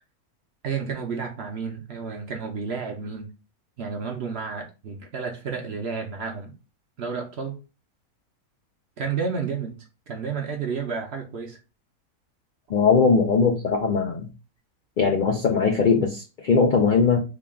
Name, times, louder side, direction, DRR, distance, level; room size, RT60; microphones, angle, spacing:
voice 1, 0.6-3.3 3.8-6.5 7.0-7.6 9.0-11.6, right 5 dB, 60° right, 0.7 m, -31 dB
voice 2, 12.7-14.3 15.0-17.2, left 5 dB, 85° left, 0.4 m, -20 dB
3.7 x 2.3 x 3.5 m
omnidirectional pair, 1.6 m